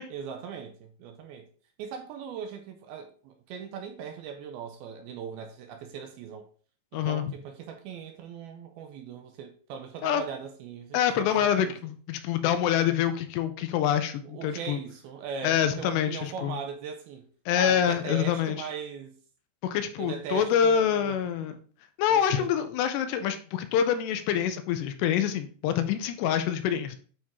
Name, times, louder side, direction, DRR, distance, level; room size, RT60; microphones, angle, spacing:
voice 1, 0.1-1.5 1.8-6.5 6.9-11.7 14.2-17.3 17.6-19.2 20.0-21.5 22.1-22.5, right 7 dB, 75° right, 2.4 m, -39 dB
voice 2, 6.9-7.3 10.0-10.2 10.9-14.8 15.4-16.6 17.5-18.6 19.6-21.6 22.0-27.0, left 9 dB, 85° left, 2.8 m, -26 dB
8.7 x 4.5 x 3.6 m
omnidirectional pair, 4.9 m